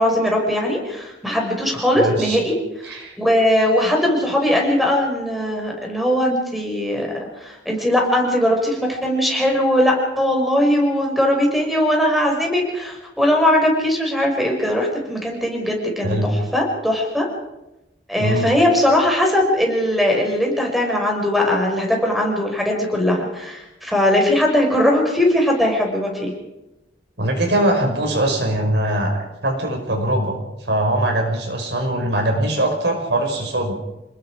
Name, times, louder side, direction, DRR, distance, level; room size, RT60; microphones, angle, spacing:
voice 1, 0.0-2.5 2.9-7.1 7.4-17.2 18.1-26.3, left 1 dB, ahead, 0 dB, 5.8 m, -19 dB
voice 2, 2.0-2.4 2.8-3.2 16.0-16.3 18.2-18.5 27.2-33.7, right 1 dB, 70° right, 3 dB, 5.2 m, -21 dB
29.0 x 20.0 x 5.0 m, 0.96 s
head